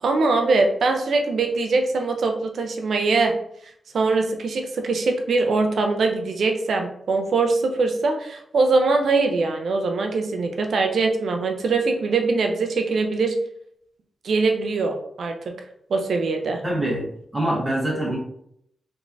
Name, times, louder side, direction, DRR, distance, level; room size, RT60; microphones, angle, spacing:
voice 1, 0.0-3.4 3.9-13.4 14.2-15.5 15.9-16.6, right 3 dB, 70° right, 4 dB, 0.5 m, -22 dB
voice 2, 16.6-17.1 17.3-18.2, right 1 dB, 20° right, -5 dB, 1.2 m, -24 dB
3.4 x 3.2 x 2.6 m, 0.71 s
wide cardioid pair, 100°, 0 cm